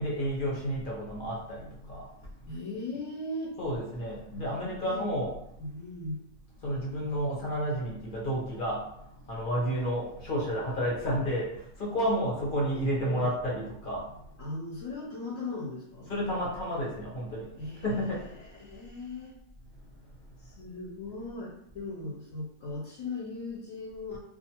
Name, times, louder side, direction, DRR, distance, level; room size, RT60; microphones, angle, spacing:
voice 1, 0.0-2.0 3.6-5.3 6.6-8.8 9.3-11.5 11.8-14.0 16.1-17.5 17.8-18.2, equal, 45° left, -5 dB, 0.8 m, -31 dB
voice 2, 2.5-3.5 4.8-5.0 5.6-6.2 6.7-6.8 9.2-9.7 12.0-12.1 12.9-13.3 14.4-16.1 17.6-19.4 20.4-24.2, left 2 dB, 65° left, -5 dB, 1.0 m, -38 dB
2.4 x 2.3 x 2.8 m, 0.76 s
omnidirectional pair, 1.5 m